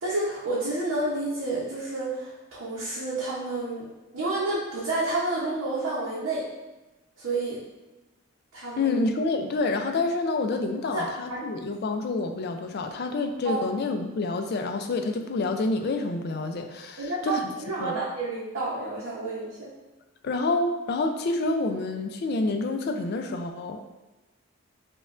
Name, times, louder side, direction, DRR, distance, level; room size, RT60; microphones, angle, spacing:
voice 1, 0.0-3.9 4.1-6.5 7.2-7.6 8.5-8.9 10.9-11.4 13.4-13.6 17.0-19.7, right 2 dB, 70° right, -7 dB, 0.7 m, -30 dB
voice 2, 8.8-17.4 17.8-18.0 20.2-23.8, left 3 dB, 50° left, 6 dB, 0.3 m, -28 dB
5.0 x 2.2 x 2.4 m, 1.1 s
head